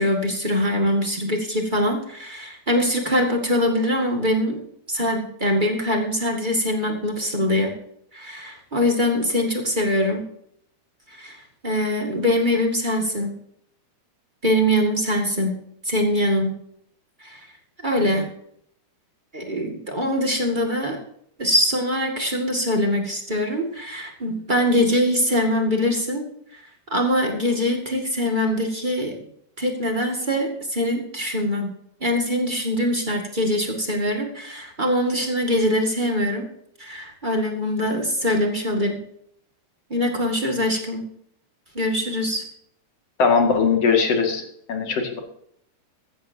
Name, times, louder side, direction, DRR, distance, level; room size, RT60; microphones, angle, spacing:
voice 1, 0.0-4.6 4.9-7.7 8.1-10.2 11.1-13.3 14.4-15.6 15.8-16.5 17.2-17.5 17.8-18.3 19.3-21.0 21.4-26.2 26.5-26.6 26.9-29.2 29.6-31.7 32.0-36.4 36.8-39.0 39.9-41.0 41.7-42.4, left 1 dB, 25° right, 1 dB, 0.9 m, -23 dB
voice 2, 43.2-45.2, left 5 dB, 45° left, 3 dB, 2.7 m, -20 dB
15.0 x 14.0 x 2.8 m, 0.68 s
omnidirectional pair, 4.7 m